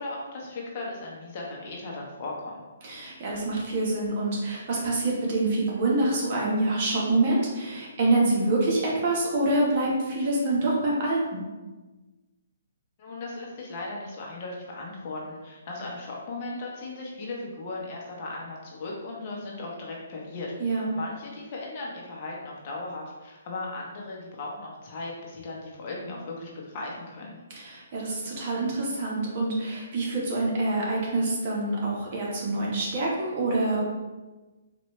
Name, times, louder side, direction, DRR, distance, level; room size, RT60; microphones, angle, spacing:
voice 1, 0.0-2.6 13.0-27.4, left 2 dB, 40° left, -3 dB, 0.9 m, -37 dB
voice 2, 2.8-11.4 20.6-20.9 27.5-33.9, right 2 dB, 45° right, -4 dB, 1.3 m, -26 dB
4.1 x 2.5 x 3.2 m, 1.2 s
hypercardioid pair, 150°, 0 cm